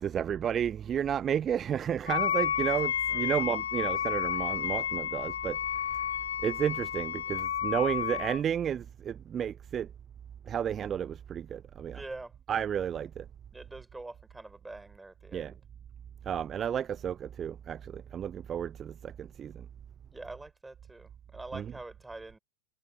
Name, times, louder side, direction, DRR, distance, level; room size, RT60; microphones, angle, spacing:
voice 1, 0.0-5.6 6.4-9.9 10.5-12.0 12.5-13.2 15.3-15.5 16.3-19.5 21.5-21.7, right 9 dB, 25° right, 0.4 m, -32 dB
Wind instrument woodwind instrument, 2.1-8.4, left 9 dB, 65° left, 0.6 m, -31 dB
voice 2, 3.1-3.4 11.9-12.3 13.5-15.6 20.1-22.4, right 2 dB, 5° right, 5.7 m, -45 dB
figure-of-eight pair, 90°, 0 cm